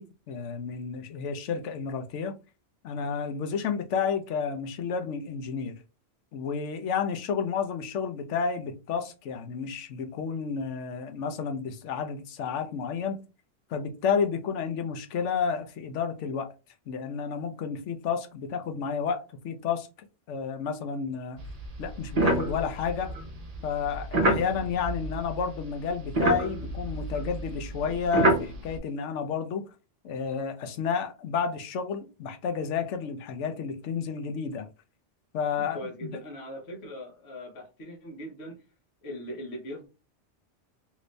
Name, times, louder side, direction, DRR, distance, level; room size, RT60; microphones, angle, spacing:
voice 1, 0.0-2.4 2.8-5.8 6.3-13.2 13.7-16.5 16.9-19.9 20.3-21.4 21.8-23.1 23.6-29.7 30.0-34.7 35.3-36.2, left 6 dB, 85° left, 1.0 m, -31 dB
sound 1, 21.4-25.6 25.9-28.8, right 2 dB, 40° right, 0.7 m, -28 dB
voice 2, 35.7-38.6 39.0-39.9, equal, 65° left, 1.2 m, -40 dB
3.0 x 2.6 x 3.2 m
omnidirectional pair, 1.2 m